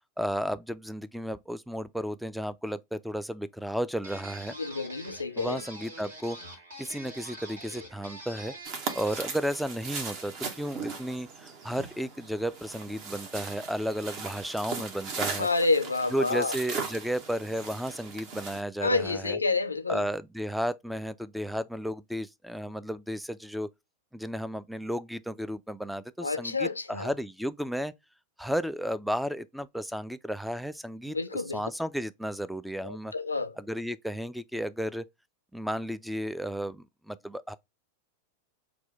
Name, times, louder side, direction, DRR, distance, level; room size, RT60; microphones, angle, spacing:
voice 1, 0.2-4.6 5.4-6.4 6.8-8.5 8.9-15.5 16.1-19.4 19.9-23.7 24.1-27.9 28.4-33.1 33.6-35.0 35.5-37.5, equal, ahead, 0.3 m, -33 dB
sound 1, 4.0-9.4, right 1 dB, 70° right, 1.7 m, -45 dB
voice 2, 4.5-5.6 15.4-16.6 18.8-20.0 26.2-27.1 31.1-31.7 32.8-33.6, left 3 dB, 80° left, 0.4 m, -29 dB
sound 2, 8.6-18.6, right 5 dB, 40° right, 0.8 m, -38 dB
5.9 x 2.2 x 3.2 m
figure-of-eight pair, 90°, 0 cm